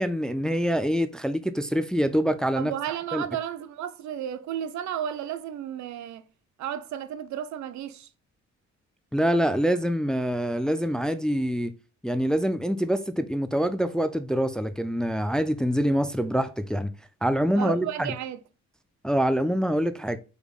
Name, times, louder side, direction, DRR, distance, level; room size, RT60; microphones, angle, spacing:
voice 1, 0.0-2.7 3.1-3.2 9.1-11.7 12.0-16.9 17.2-18.1 19.0-20.2, equal, ahead, 0.4 m, -25 dB
voice 2, 2.5-6.2 6.6-8.1 17.6-18.4, right 10 dB, 70° right, 0.6 m, -33 dB
5.1 x 3.4 x 2.4 m
cardioid pair, 90°, 30 cm